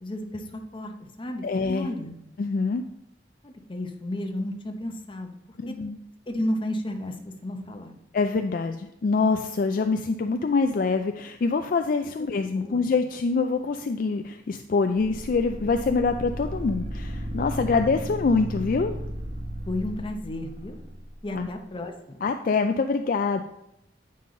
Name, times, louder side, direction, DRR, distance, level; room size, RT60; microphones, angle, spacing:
voice 1, 0.0-2.2 3.4-5.4 5.7-5.8 6.3-8.0 12.5-12.9 19.7-20.8 21.2-22.2, left 1 dB, 30° left, 4 dB, 0.8 m, -33 dB
voice 2, 1.4-1.9 2.4-2.8 5.6-6.0 8.1-18.9 21.3-21.5 22.2-23.4, left 4 dB, 50° left, 6 dB, 0.4 m, -25 dB
sound 1, 15.0-21.1, equal, 35° right, 1.0 m, -34 dB
9.0 x 5.4 x 3.8 m, 0.81 s
head